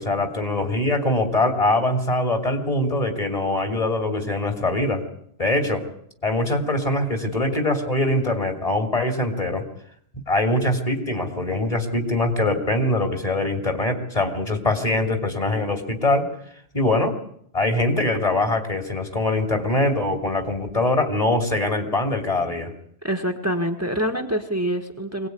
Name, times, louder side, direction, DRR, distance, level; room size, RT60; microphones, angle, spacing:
voice 1, 0.0-5.0 5.4-5.8 6.2-9.6 10.3-16.3 16.7-17.1 17.5-22.7, left 2 dB, 35° left, 6 dB, 3.0 m, -23 dB
voice 2, 23.0-25.3, equal, 15° right, 4 dB, 1.7 m, -25 dB
23.0 x 18.5 x 9.4 m, 0.68 s
omnidirectional pair, 1.1 m